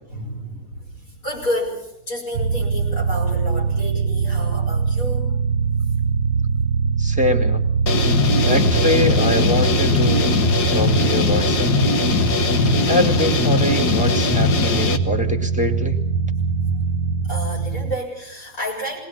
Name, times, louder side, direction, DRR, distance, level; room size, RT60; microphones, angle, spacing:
voice 1, 0.1-5.4 8.2-8.5 12.3-12.6 17.2-19.0, equal, 60° left, -2 dB, 7.8 m, -30 dB
sound 1, 2.3-18.0, right 5 dB, 75° right, 1.6 m, -22 dB
voice 2, 7.0-7.6 8.5-10.4 10.7-12.0 12.9-16.0, left 1 dB, 5° right, 3 dB, 2.0 m, -24 dB
sound 2, 7.9-15.0, left 5 dB, 90° left, 1.9 m, -20 dB
21.5 x 19.0 x 7.3 m, 0.81 s
omnidirectional pair, 1.7 m